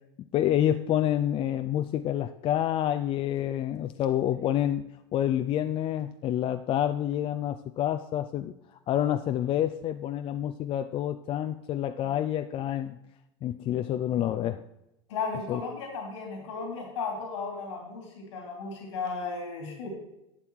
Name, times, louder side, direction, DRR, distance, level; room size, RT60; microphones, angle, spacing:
voice 1, 0.3-4.8 5.1-8.5 8.9-13.0 13.4-14.6 15.5-15.6, left 11 dB, 40° left, 9 dB, 0.5 m, -28 dB
voice 2, 15.1-19.9, left 4 dB, 85° left, 1 dB, 2.8 m, -35 dB
11.5 x 7.1 x 4.6 m, 0.88 s
hypercardioid pair, 105°, 15 cm